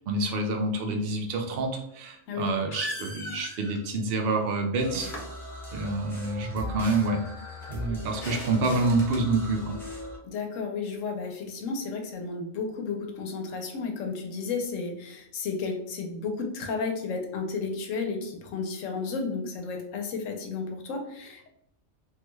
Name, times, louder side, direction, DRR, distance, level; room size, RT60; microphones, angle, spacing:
voice 1, 0.1-5.1 5.7-7.2 7.7-9.8, right 2 dB, 60° right, 3 dB, 0.7 m, -27 dB
sound 1, 1.7-1.8 2.7-3.8 5.0-5.3 7.3-7.4 7.6-7.7 8.2-9.2, left 1 dB, 45° left, 0.9 m, -38 dB
sound 2, 4.8-10.2, left 1 dB, ahead, 0.8 m, -39 dB
voice 2, 10.2-21.5, left 4 dB, 90° left, 3 dB, 1.0 m, -33 dB
3.3 x 2.2 x 3.0 m, 0.74 s
omnidirectional pair, 1.3 m